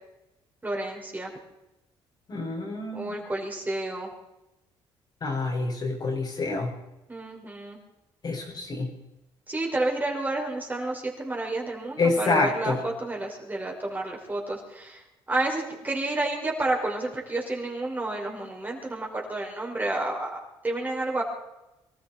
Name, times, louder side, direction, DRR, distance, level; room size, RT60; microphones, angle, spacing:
voice 1, 0.6-1.3 2.9-4.1 7.1-7.8 9.5-15.0 15.3-20.4 20.6-21.2, right 2 dB, 20° right, -1 dB, 5.7 m, -30 dB
voice 2, 2.3-3.1 5.2-6.7 8.2-8.9 12.0-12.8, left 3 dB, 45° left, -1 dB, 6.1 m, -27 dB
24.5 x 13.5 x 4.5 m, 0.92 s
cardioid pair, 90°, 10 cm